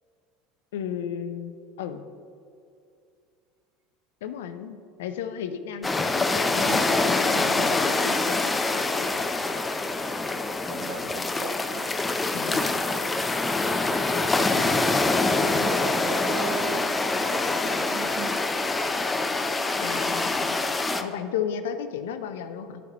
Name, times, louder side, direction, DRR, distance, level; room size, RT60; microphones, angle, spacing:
voice 1, 0.7-2.1 4.2-9.1 12.3-12.6 19.8-20.6 21.0-22.8, left 8 dB, 80° left, 10 dB, 0.5 m, -34 dB
sound 1, 5.8-21.0, left 3 dB, 20° left, 0.5 m, -25 dB
voice 2, 10.7-11.8 13.7-14.0 14.4-15.0 15.5-18.3, right 5 dB, 70° right, 6 dB, 0.8 m, -38 dB
12.0 x 5.9 x 3.0 m, 2.4 s
hypercardioid pair, 80°, 0 cm